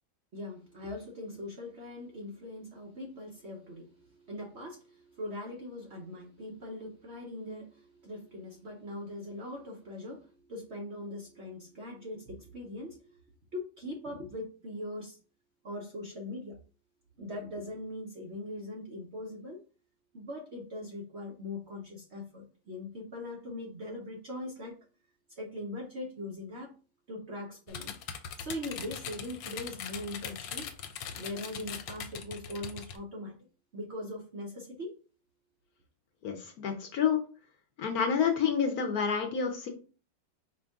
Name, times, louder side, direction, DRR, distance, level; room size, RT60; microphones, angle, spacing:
voice 1, 0.3-13.2 13.5-15.2 15.6-16.6 17.2-19.6 20.1-24.8 25.3-26.7 27.1-27.9 28.4-30.6 31.1-33.4 33.7-34.9, left 1 dB, 50° right, -1 dB, 0.8 m, -41 dB
sound 1, 27.7-33.0, left 8 dB, 80° left, 1.3 m, -41 dB
voice 2, 36.2-37.2 37.8-39.7, left 7 dB, 65° left, 4 dB, 1.1 m, -28 dB
5.1 x 2.7 x 3.5 m, 0.36 s
omnidirectional pair, 1.9 m